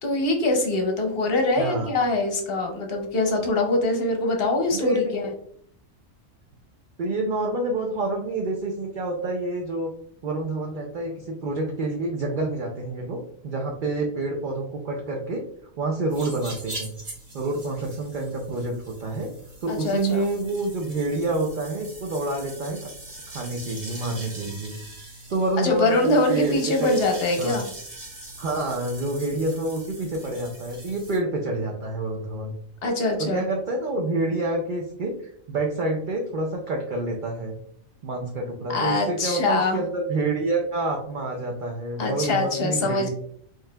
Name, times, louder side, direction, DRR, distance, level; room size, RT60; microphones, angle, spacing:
voice 1, 0.0-5.3 19.7-20.2 25.6-27.7 32.8-33.4 38.7-39.8 42.0-43.1, left 2 dB, 50° left, 3 dB, 0.9 m, -23 dB
voice 2, 1.6-1.9 4.7-5.1 7.0-9.9 10.2-15.4 15.8-16.9 17.3-19.3 19.6-22.8 23.3-24.7 25.3-27.1 27.4-27.6 28.4-32.5 33.2-37.6 38.0-43.1, right 2 dB, 55° right, 0 dB, 0.5 m, -28 dB
sound 1, 16.1-31.2, right 2 dB, 30° right, 1.0 m, -42 dB
4.6 x 3.0 x 2.2 m, 0.64 s
omnidirectional pair, 1.4 m